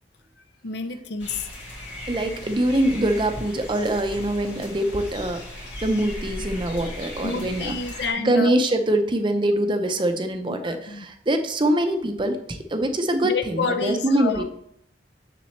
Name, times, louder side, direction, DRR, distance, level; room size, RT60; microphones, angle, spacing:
voice 1, 0.6-1.5 7.2-8.5 10.5-11.1 13.2-14.4, left 4 dB, 65° left, 8 dB, 0.6 m, -29 dB
sound 1, 1.2-8.1, left 1 dB, 80° left, 2.3 m, -37 dB
voice 2, 2.1-14.4, right 1 dB, 25° right, 6 dB, 0.5 m, -24 dB
7.0 x 6.8 x 3.2 m, 0.71 s
head